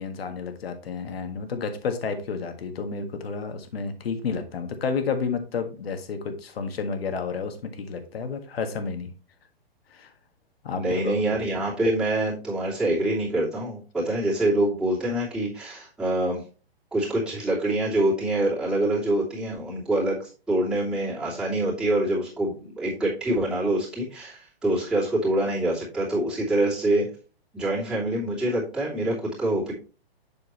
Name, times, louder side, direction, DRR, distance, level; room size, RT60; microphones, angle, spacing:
voice 1, 0.0-9.1 9.9-10.1 10.6-11.4, left 5 dB, 70° left, 8 dB, 1.6 m, -31 dB
voice 2, 10.7-16.4 16.9-27.1 27.5-29.7, right 1 dB, 5° right, -8 dB, 2.6 m, -25 dB
7.0 x 6.6 x 3.0 m, 0.36 s
hypercardioid pair, 150°, 31 cm